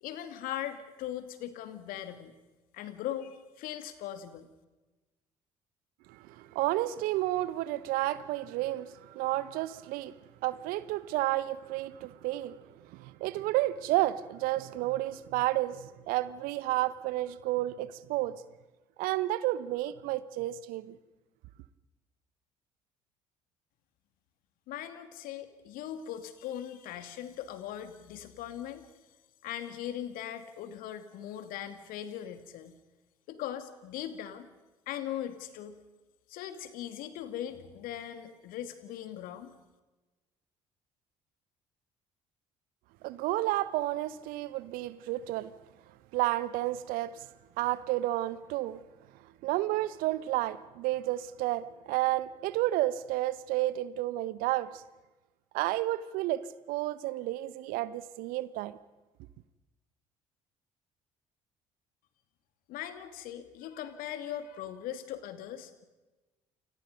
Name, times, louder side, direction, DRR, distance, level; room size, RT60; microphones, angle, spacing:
voice 1, 0.0-2.3 2.7-4.5 24.7-28.9 29.4-32.8 33.3-34.5 34.9-35.8 36.3-39.5 62.7-65.8, left 11 dB, 60° left, 2.6 m, -40 dB
voice 2, 6.1-10.1 10.4-12.6 12.9-18.4 19.0-21.0 43.0-45.5 46.1-47.2 47.6-48.8 49.4-54.8 55.5-58.8, right 16 dB, 60° right, 1.2 m, -31 dB
29.5 x 26.5 x 5.3 m
figure-of-eight pair, 55°, 16 cm